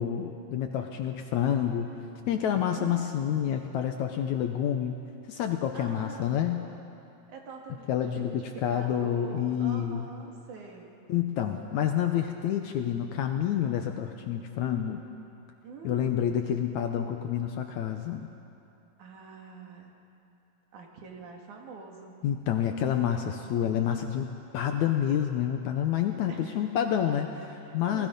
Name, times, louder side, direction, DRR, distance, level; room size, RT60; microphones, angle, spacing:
voice 1, 0.0-2.0 2.3-5.0 5.3-6.6 7.9-10.1 11.1-15.0 15.8-18.3 22.2-28.1, left 9 dB, 75° left, 5 dB, 1.9 m, -28 dB
voice 2, 2.7-3.6 3.9-4.2 5.7-6.5 7.3-10.9 15.6-16.3 19.0-19.9 20.7-22.2 26.3-26.6 27.6-28.1, right 4 dB, 65° right, 1 dB, 3.3 m, -45 dB
28.0 x 20.0 x 5.3 m, 2.7 s
omnidirectional pair, 4.0 m